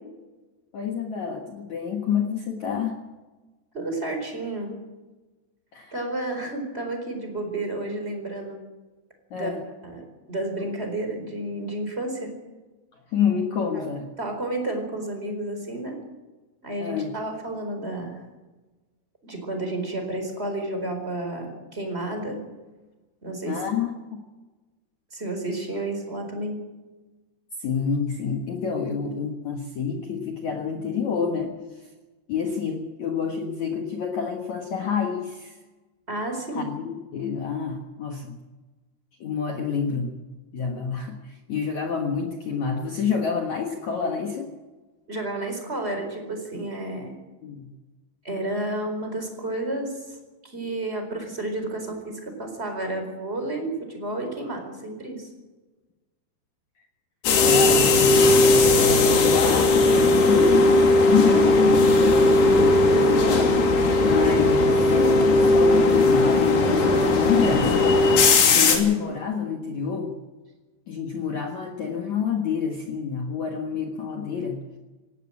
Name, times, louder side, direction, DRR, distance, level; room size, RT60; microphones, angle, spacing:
voice 1, 0.7-3.0 5.7-5.9 9.3-9.6 13.1-14.1 16.8-17.1 23.4-24.2 27.6-31.8 32.3-35.6 36.5-38.3 39.2-40.1 40.5-44.5 47.4-47.7 57.4-63.6 64.0-70.2 70.9-74.6, left 6 dB, 85° left, 2 dB, 1.6 m, -28 dB
voice 2, 3.7-4.7 5.9-8.6 9.3-9.5 9.8-12.3 13.7-13.9 14.2-16.0 16.6-18.2 19.2-22.4 23.2-23.6 25.1-26.6 36.1-36.7 45.1-47.1 48.2-50.2 50.4-55.3, right 2 dB, 15° right, 4 dB, 3.8 m, -31 dB
sound 1, 57.2-68.8, left 2 dB, 55° left, 4.5 m, -18 dB
18.5 x 16.0 x 8.6 m, 1.2 s
omnidirectional pair, 6.0 m